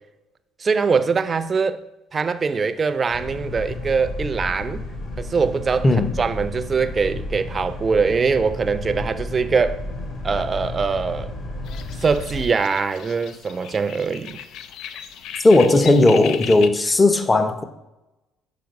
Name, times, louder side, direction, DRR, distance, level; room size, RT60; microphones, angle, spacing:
voice 1, 0.6-1.8 2.1-4.8 5.2-5.9 6.2-9.8 10.2-11.3 12.0-14.4, right 5 dB, 35° right, 0.6 m, -22 dB
Boat Water vehicle, 3.1-12.5, left 2 dB, 50° left, 2.0 m, -32 dB
sound 1, 11.6-16.7, left 8 dB, 70° left, 0.5 m, -36 dB
voice 2, 15.4-17.6, left 2 dB, 20° left, 0.8 m, -16 dB
5.9 x 4.6 x 5.3 m
supercardioid pair, 75°, 0 cm